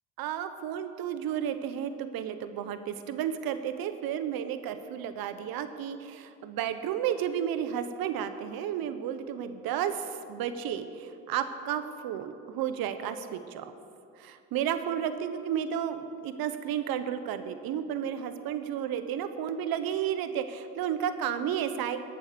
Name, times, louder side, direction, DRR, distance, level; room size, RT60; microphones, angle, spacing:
voice 1, 0.2-13.7 14.2-22.0, right 9 dB, 70° right, 10 dB, 1.0 m, -32 dB
14.0 x 8.9 x 6.8 m, 2.5 s
supercardioid pair, 75°, 37 cm